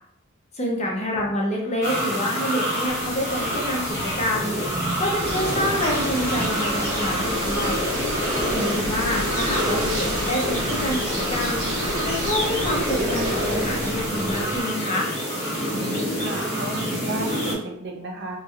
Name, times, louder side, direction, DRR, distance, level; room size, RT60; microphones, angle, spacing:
voice 1, 0.5-4.6 5.0-7.8 8.5-11.7 12.0-15.1, left 1 dB, 30° left, -2 dB, 0.6 m, -27 dB
sound 1, 1.8-17.5, equal, 15° left, 1.0 m, -27 dB
sound 2, 2.8-14.6, left 3 dB, 75° left, 0.3 m, -37 dB
sound 3, 5.2-13.9, equal, 90° right, 0.9 m, -29 dB
voice 2, 15.7-18.4, right 2 dB, 55° right, 0 dB, 0.5 m, -33 dB
3.0 x 2.6 x 2.4 m, 0.79 s
head